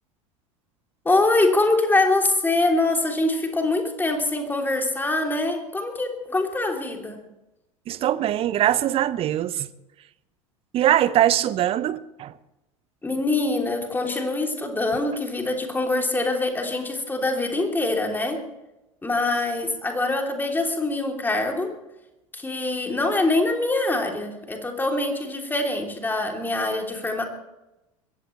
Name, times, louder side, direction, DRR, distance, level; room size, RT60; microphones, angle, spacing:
voice 1, 1.0-7.2 13.0-18.4 19.0-21.7 22.3-27.2, left 2 dB, 10° left, 3.2 m, -24 dB
voice 2, 7.9-9.7 10.7-12.3, right 12 dB, 35° right, 0.9 m, -22 dB
22.0 x 16.0 x 3.3 m
figure-of-eight pair, 75°, 17 cm